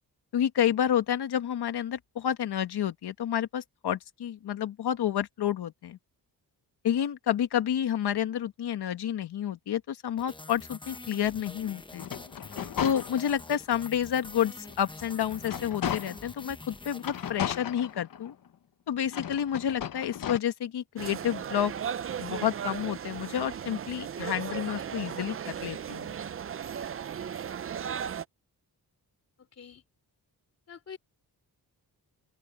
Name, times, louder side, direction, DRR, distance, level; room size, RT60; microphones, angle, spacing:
voice 1, 0.3-6.0 6.8-12.1 12.8-18.3 18.9-21.7 22.2-26.1, left 10 dB, 80° left, 1.4 m, -30 dB
sound 1, 10.2-17.7, left 2 dB, 10° left, 0.9 m, -46 dB
sound 2, 11.9-13.6 14.1-14.2 14.6-16.4 17.0-18.5 19.0-20.4, left 9 dB, 60° left, 1.0 m, -36 dB
sound 3, 21.0-28.3, right 8 dB, 35° right, 0.4 m, -36 dB
voice 2, 29.4-29.8 30.7-31.0, left 7 dB, 40° left, 2.9 m, -46 dB
open air
wide cardioid pair, 180°, 39 cm